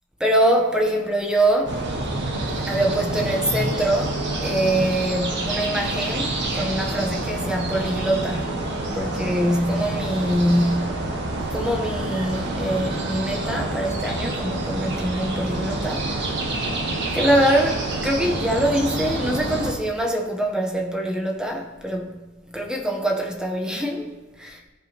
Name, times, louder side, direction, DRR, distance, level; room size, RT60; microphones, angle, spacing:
voice 1, 0.2-1.8 2.5-11.1 11.4-16.1 17.1-24.5, right 1 dB, 5° right, 0.9 m, -24 dB
sound 1, 1.7-19.7, right 2 dB, 55° right, 1.2 m, -27 dB
13.5 x 4.8 x 2.9 m
head